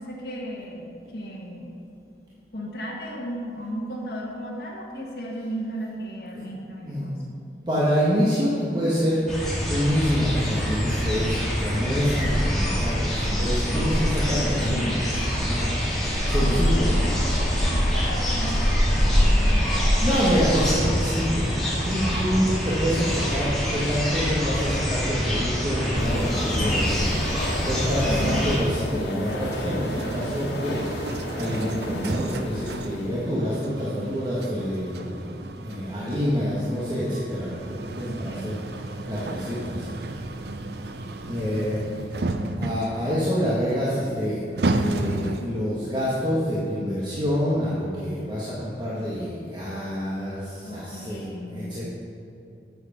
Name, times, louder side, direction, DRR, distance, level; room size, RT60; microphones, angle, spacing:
voice 1, 0.0-1.8 2.5-7.4 13.7-15.3 16.4-20.5 28.0-28.5 38.1-38.5 50.6-51.8, equal, 65° left, -4 dB, 1.5 m, -35 dB
voice 2, 6.8-7.1 7.7-9.3 9.7-16.9 19.4-19.5 20.0-21.5 21.8-31.1 31.3-35.2 35.6-40.0 41.2-41.8 42.6-44.4 44.7-51.8, equal, 25° right, -8 dB, 1.5 m, -27 dB
sound 1, 9.3-28.6, equal, ahead, 2.1 m, -24 dB
sound 2, 26.0-33.4, left 1 dB, 85° left, 1.6 m, -33 dB
sound 3, 29.3-45.7, right 2 dB, 65° right, 0.6 m, -33 dB
8.5 x 7.9 x 5.9 m, 2.7 s
head